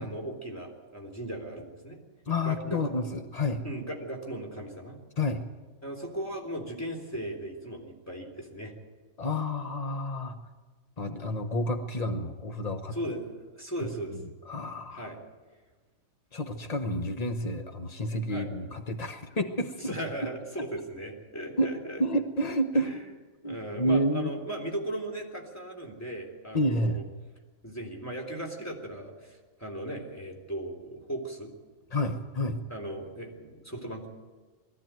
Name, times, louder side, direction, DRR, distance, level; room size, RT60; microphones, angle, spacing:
voice 1, 0.0-2.0 2.4-2.8 3.6-5.0 5.8-8.7 12.9-13.3 13.5-14.1 14.9-15.2 18.3-18.5 19.8-22.0 22.7-23.0 23.4-27.0 27.6-31.5 32.7-34.1, right 1 dB, 5° left, -1 dB, 3.6 m, -37 dB
voice 2, 2.3-3.6 5.2-5.5 9.2-10.4 11.0-13.0 14.5-15.1 16.3-19.9 20.6-20.7 21.6-21.7 22.0-23.0 23.4-24.3 26.5-27.0 31.9-32.6, left 1 dB, 80° left, 7 dB, 0.3 m, -29 dB
21.0 x 15.0 x 9.1 m, 1.3 s
omnidirectional pair, 2.4 m